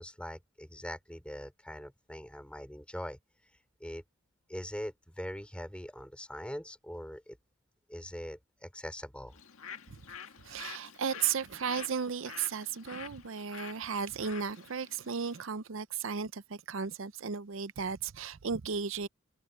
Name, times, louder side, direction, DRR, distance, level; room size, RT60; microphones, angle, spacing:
voice 1, 0.0-3.2 3.8-4.0 4.5-7.4 7.9-9.4, equal, 5° left, 3.9 m, -42 dB
Bird, 9.3-15.5, left 7 dB, 85° left, 1.8 m, -48 dB
voice 2, 10.4-19.1, right 6 dB, 70° right, 0.6 m, -35 dB
head